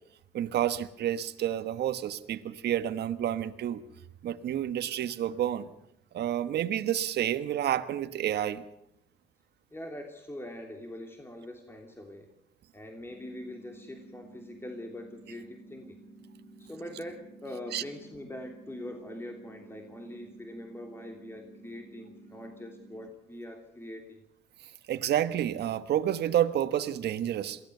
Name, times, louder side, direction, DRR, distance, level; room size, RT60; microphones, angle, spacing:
voice 1, 0.3-3.8 4.2-5.7 6.1-8.6 17.7-17.8 24.9-27.6, right 11 dB, 60° right, 11 dB, 1.3 m, -29 dB
voice 2, 9.7-12.3 12.7-16.0 16.6-24.2, left 1 dB, 10° left, 3 dB, 3.1 m, -43 dB
sound 1, 13.1-23.1, right 2 dB, 40° left, 2.9 m, -53 dB
22.5 x 16.5 x 6.9 m, 0.79 s
supercardioid pair, 80°, 19 cm